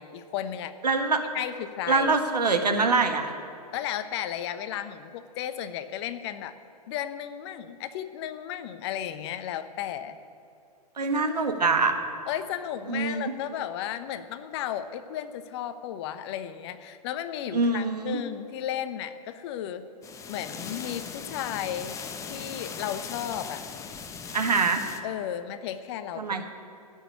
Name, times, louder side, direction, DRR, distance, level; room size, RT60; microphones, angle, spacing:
voice 1, 0.0-0.7 1.3-2.1 3.7-6.5 6.9-10.2 12.3-19.9 20.3-22.0 22.3-23.6 25.0-26.5, left 10 dB, 40° left, 11 dB, 0.9 m, -34 dB
voice 2, 0.8-1.2 1.9-3.3 11.0-11.9 12.9-13.3 17.5-18.2 24.3-24.8 26.2-26.5, right 4 dB, 80° right, 5 dB, 1.6 m, -24 dB
sound 1, 20.0-25.0, left 6 dB, 15° left, 0.8 m, -39 dB
16.0 x 6.5 x 9.7 m, 2.6 s
figure-of-eight pair, 115°, 20 cm